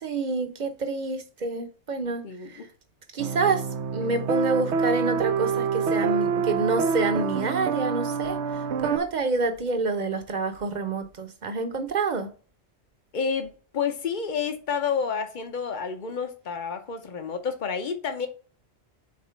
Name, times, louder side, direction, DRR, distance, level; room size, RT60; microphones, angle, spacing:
voice 1, 0.0-2.7 3.1-3.6 3.9-12.3, right 3 dB, 45° right, 0.9 m, -28 dB
voice 2, 2.2-2.7 13.1-18.3, left 6 dB, 50° left, 1.0 m, -30 dB
sound 1, 3.2-9.0, right 6 dB, 85° right, 1.0 m, -27 dB
5.1 x 4.2 x 5.6 m
omnidirectional pair, 1.1 m